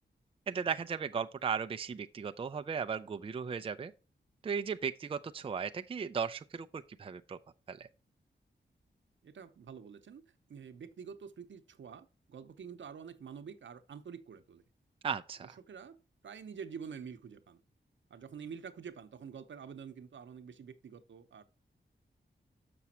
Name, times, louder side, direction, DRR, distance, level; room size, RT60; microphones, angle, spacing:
voice 1, 0.5-3.9 4.4-7.4 7.7-7.9 15.0-15.5, right 6 dB, 30° right, 0.4 m, -36 dB
voice 2, 9.2-14.6 15.4-17.6 18.1-21.4, right 6 dB, 80° right, 0.8 m, -47 dB
6.9 x 6.0 x 4.2 m
wide cardioid pair, 160°, 19 cm